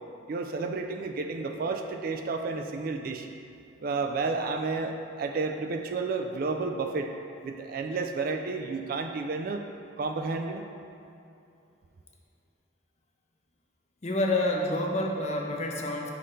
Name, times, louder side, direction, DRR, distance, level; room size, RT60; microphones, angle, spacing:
voice 1, 0.3-3.3 3.8-7.1 7.4-9.7 10.0-10.6, right 3 dB, 45° right, 5 dB, 0.3 m, -31 dB
voice 2, 14.0-16.1, left 1 dB, 35° left, 0 dB, 0.5 m, -28 dB
5.8 x 3.3 x 5.3 m, 2.6 s
head